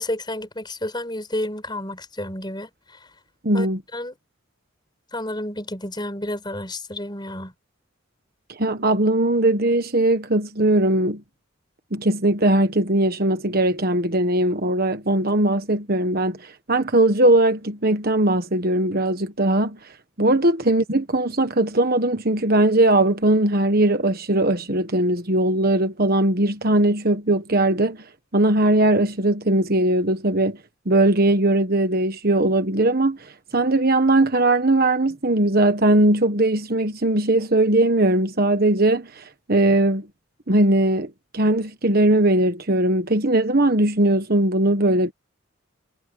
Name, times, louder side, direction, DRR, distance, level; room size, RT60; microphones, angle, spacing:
voice 1, 0.0-3.0 3.5-3.7 3.9-4.2 5.1-7.5 20.3-20.4, left 1 dB, 20° left, 5.4 m, -31 dB
voice 2, 3.4-3.8 8.5-11.2 11.9-19.8 20.2-28.0 28.3-30.6 30.9-33.2 33.5-40.1 40.5-45.1, right 1 dB, 45° right, 1.3 m, -19 dB
head